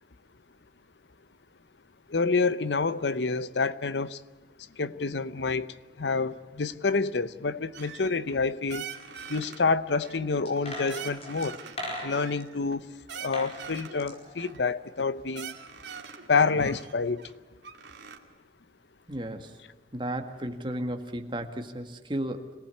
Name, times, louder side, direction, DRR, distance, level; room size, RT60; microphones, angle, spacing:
voice 1, 2.1-4.2 4.8-8.9 9.3-11.6 12.0-12.8 13.1-15.5 16.3-17.2, left 4 dB, 75° left, 0.8 m, -28 dB
sound 1, 7.7-8.4 8.7-9.6 10.0-10.6 10.9-11.8 12.1-14.0 14.4-14.6 15.0-15.1 15.3-16.3 16.6-18.2, right 7 dB, 85° right, 2.3 m, -43 dB
sound 2, 10.5-12.5 13.1-13.6 13.8-15.2 15.5-15.6, left 1 dB, 35° left, 5.3 m, -39 dB
voice 2, 19.1-19.5 19.9-22.5, right 1 dB, 25° right, 1.9 m, -34 dB
26.0 x 18.5 x 8.4 m
head